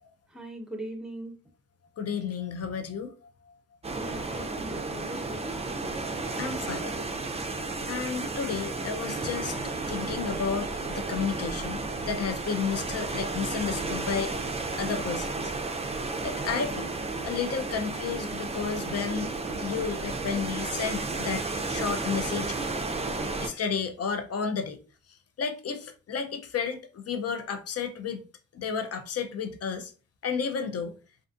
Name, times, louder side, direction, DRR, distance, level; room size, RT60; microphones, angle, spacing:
voice 1, 0.3-1.4 3.9-5.6, right 1 dB, ahead, 0.9 m, -40 dB
voice 2, 2.0-3.3 4.2-4.4 6.4-7.0 7.9-14.4 14.8-15.5 16.2-16.9 17.2-19.3 19.6-22.6 23.4-24.8 25.4-28.2 28.5-29.9 30.2-31.0, left 6 dB, 50° left, 0.6 m, -32 dB
sound 1, 3.8-23.5, right 3 dB, 20° right, 0.5 m, -33 dB
2.5 x 2.4 x 2.4 m
supercardioid pair, 45°, 31 cm